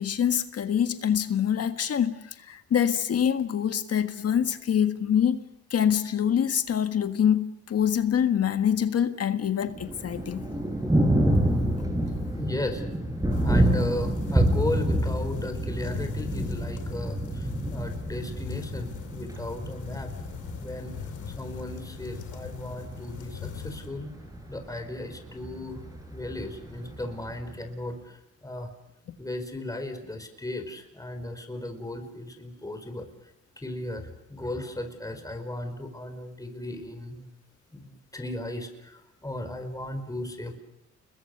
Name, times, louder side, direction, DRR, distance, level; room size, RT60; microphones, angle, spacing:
voice 1, 0.0-5.4 5.7-10.4, left 9 dB, 55° left, 9 dB, 1.6 m, -25 dB
Thunder, 9.7-27.7, right 1 dB, 10° right, 5.5 m, -28 dB
voice 2, 12.0-12.8 13.4-20.1 20.6-20.9 21.3-24.1 24.5-25.8 26.1-28.7 29.2-33.1 33.6-37.3 37.7-40.6, left 1 dB, 10° left, 7 dB, 4.6 m, -36 dB
sound 1, 13.3-23.9, left 10 dB, 80° left, 2.6 m, -41 dB
30.0 x 22.0 x 6.7 m, 0.83 s
cardioid pair, 90°, 30 cm